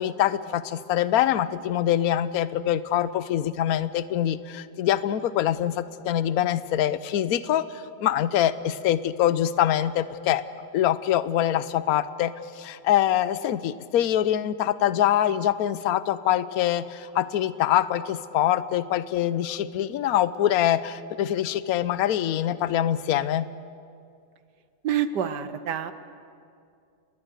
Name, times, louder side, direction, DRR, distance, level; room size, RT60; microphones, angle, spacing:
voice 1, 0.0-10.4 10.7-23.5, left 11 dB, 65° left, 14 dB, 1.1 m, -24 dB
voice 2, 24.8-25.9, right 9 dB, 70° right, 11 dB, 1.5 m, -27 dB
29.5 x 21.0 x 6.6 m, 2.3 s
omnidirectional pair, 1.9 m